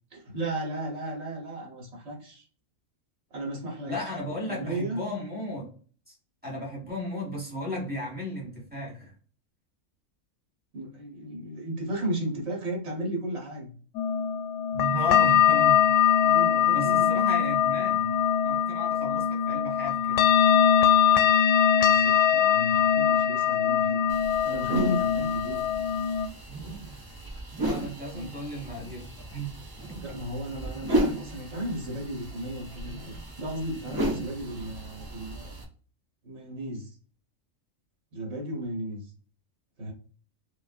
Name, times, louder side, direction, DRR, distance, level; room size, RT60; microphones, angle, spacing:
voice 1, 0.1-2.4 3.3-3.9 4.5-5.0 10.7-13.7 16.2-17.3 21.8-24.0 24.4-25.6 28.1-28.3 29.9-35.5 36.2-37.0 38.1-39.1 39.8-39.9, right 1 dB, 55° right, -1 dB, 1.6 m, -34 dB
voice 2, 3.8-5.7 6.1-6.2 6.4-9.1 14.7-15.8 16.7-18.2 18.4-20.6 27.6-29.5 34.1-34.2, equal, 5° right, -3 dB, 1.4 m, -35 dB
sound 1, 13.9-26.3, left 8 dB, 70° left, 0.8 m, -22 dB
sound 2, 24.1-35.6, right 1 dB, 30° right, 0.4 m, -34 dB
5.5 x 2.4 x 2.4 m, 0.42 s
omnidirectional pair, 1.4 m